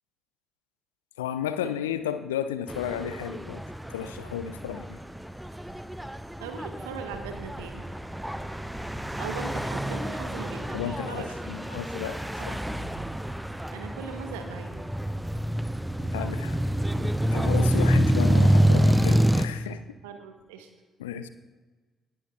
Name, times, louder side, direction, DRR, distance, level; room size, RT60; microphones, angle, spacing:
voice 1, 1.2-3.6 3.9-5.0 10.7-12.2 12.5-12.6 16.1-16.6 17.3-19.8 21.0-21.3, left 9 dB, 75° left, 12 dB, 0.4 m, -33 dB
sound 1, 2.7-19.5, equal, 5° right, 0.6 m, -27 dB
voice 2, 6.4-7.8 9.2-11.3 11.8-11.9 12.4-12.7 13.7-14.8 20.0-20.7, right 6 dB, 75° right, 6 dB, 1.0 m, -39 dB
19.0 x 9.7 x 2.4 m, 1.3 s
figure-of-eight pair, 40°, 0 cm